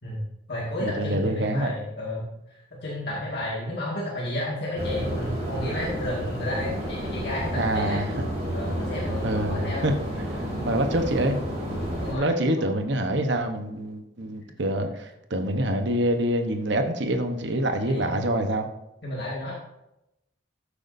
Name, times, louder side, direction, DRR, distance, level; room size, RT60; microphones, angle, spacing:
voice 1, 0.0-8.0 8.5-9.8 12.0-12.3 12.6-12.7 17.9-18.2 19.0-19.5, left 1 dB, 55° left, -5 dB, 2.0 m, -32 dB
voice 2, 0.8-1.7 7.5-8.1 9.2-10.0 10.3-11.4 12.1-18.7, right 1 dB, 60° right, 6 dB, 1.0 m, -26 dB
sound 1, 4.7-12.1, equal, 35° right, 2.9 m, -30 dB
13.5 x 8.3 x 2.7 m, 0.87 s
head